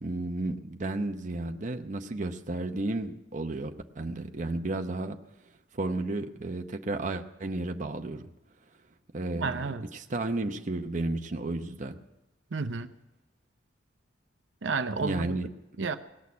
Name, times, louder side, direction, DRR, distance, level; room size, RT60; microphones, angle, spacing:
voice 1, 0.0-5.2 5.7-8.2 9.1-12.0 15.0-15.5, right 2 dB, 40° right, 5 dB, 0.8 m, -33 dB
voice 2, 9.3-9.8 12.5-12.9 14.6-15.4 15.8-16.0, right 4 dB, 80° right, 9 dB, 0.7 m, -31 dB
18.5 x 6.5 x 9.5 m, 1.0 s
head